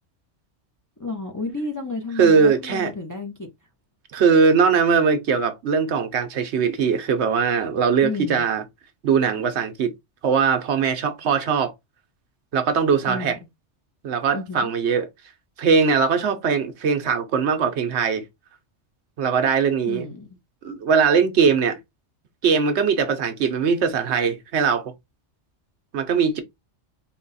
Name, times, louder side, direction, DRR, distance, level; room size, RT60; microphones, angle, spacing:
voice 1, 1.0-3.5 8.0-8.4 13.1-13.4 14.3-14.7 19.9-20.3, left 3 dB, 20° left, 0.5 m, -31 dB
voice 2, 2.2-2.9 4.1-8.6 9.0-9.9 10.2-11.7 12.5-13.4 14.0-15.1 15.6-18.2 19.2-20.1 20.6-21.8 22.4-24.9 25.9-26.4, right 6 dB, 70° right, 1.0 m, -20 dB
3.9 x 2.2 x 4.0 m
omnidirectional pair, 1.2 m